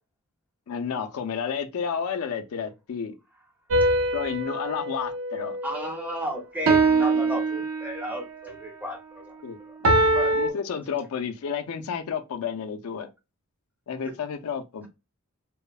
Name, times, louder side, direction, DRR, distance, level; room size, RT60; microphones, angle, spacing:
voice 1, 0.7-3.1 4.1-5.6 9.4-9.6 10.3-13.1 13.9-14.9, left 7 dB, 75° left, 0.4 m, -31 dB
sound 1, 3.7-6.1 6.7-8.2 9.8-10.5, right 2 dB, 60° right, 0.5 m, -23 dB
voice 2, 5.6-10.4 10.7-10.8 14.0-14.1, equal, 5° right, 0.5 m, -35 dB
2.9 x 2.0 x 2.3 m
head